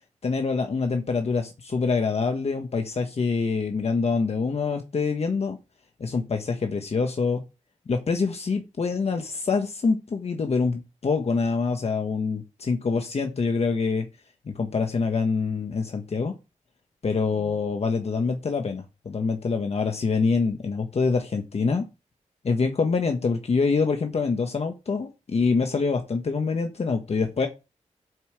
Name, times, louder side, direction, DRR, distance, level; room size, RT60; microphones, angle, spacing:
voice 1, 0.2-5.6 6.0-7.4 7.9-14.1 14.4-16.3 17.0-21.9 22.4-27.5, left 4 dB, 55° left, 5 dB, 1.4 m, -25 dB
8.0 x 5.6 x 6.5 m, 0.27 s
wide cardioid pair, 100°, 13 cm